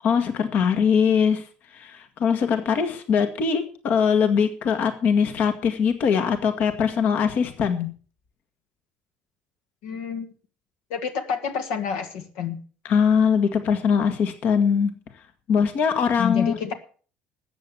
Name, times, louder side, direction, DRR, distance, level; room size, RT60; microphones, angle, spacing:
voice 1, 0.0-7.9 12.8-15.0 15.5-16.6, left 6 dB, 60° left, 8 dB, 1.7 m, -22 dB
voice 2, 9.8-10.3 10.9-12.6 16.2-16.7, left 7 dB, 80° left, 5 dB, 2.0 m, -28 dB
13.5 x 8.4 x 7.0 m, 0.41 s
supercardioid pair, 85°, 3 cm